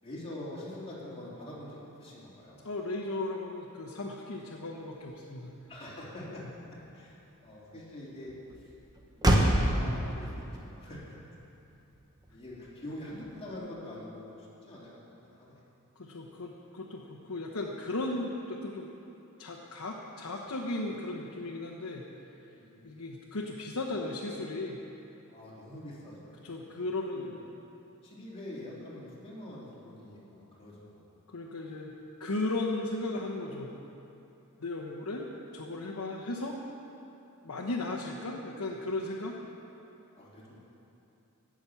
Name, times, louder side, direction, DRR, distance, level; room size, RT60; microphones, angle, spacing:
voice 1, 0.0-2.6 5.7-6.4 6.7-8.7 9.1-11.2 12.3-15.6 22.5-22.9 25.3-26.8 27.1-27.3 28.0-31.0 40.2-40.6, left 1 dB, 25° left, -7 dB, 3.2 m, -45 dB
voice 2, 2.6-5.5 16.0-18.9 19.4-22.0 22.8-24.8 26.4-27.4 31.3-31.9 32.2-33.7 34.6-35.2 35.5-36.6 37.4-39.3, left 2 dB, 85° left, -1 dB, 1.1 m, -36 dB
Motor vehicle (road), 5.1-13.8, right 1 dB, 20° right, 1.1 m, -32 dB
17.5 x 6.2 x 7.1 m, 2.9 s
head